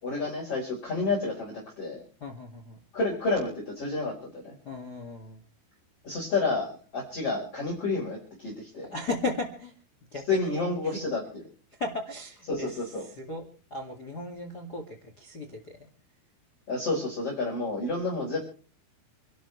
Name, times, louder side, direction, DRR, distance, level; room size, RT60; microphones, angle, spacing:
voice 1, 0.0-2.0 2.9-4.5 6.0-8.9 10.3-11.2 12.5-13.0 16.7-18.4, left 3 dB, 30° left, -4 dB, 4.9 m, -30 dB
voice 2, 2.2-2.8 4.6-5.4 8.9-9.7 10.1-11.0 11.7-13.4 13.7-15.8, left 2 dB, 55° left, 4 dB, 1.0 m, -36 dB
28.5 x 12.5 x 3.2 m, 0.39 s
omnidirectional pair, 5.9 m